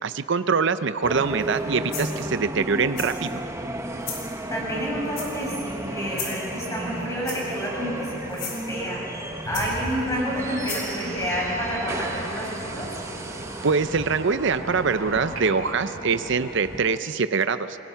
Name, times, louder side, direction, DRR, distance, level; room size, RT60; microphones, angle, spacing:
voice 1, 0.0-3.3 13.6-17.8, right 5 dB, 60° right, 11 dB, 0.6 m, -24 dB
sound 1, 1.0-17.0, right 1 dB, 15° right, 1.1 m, -34 dB
sound 2, 1.4-1.6 1.9-2.3 3.0-3.3 4.0-4.3 5.1-5.6 6.1-6.5 7.2-7.7 8.3-8.6 9.5-10.0 10.6-10.9, left 6 dB, 70° left, 5.0 m, -35 dB
voice 2, 4.5-9.0 9.5-12.9, equal, 15° left, -5 dB, 7.2 m, -29 dB
sound 3, 9.5-16.7, right 2 dB, 90° right, 3.2 m, -38 dB
29.0 x 21.5 x 5.8 m, 2.9 s
head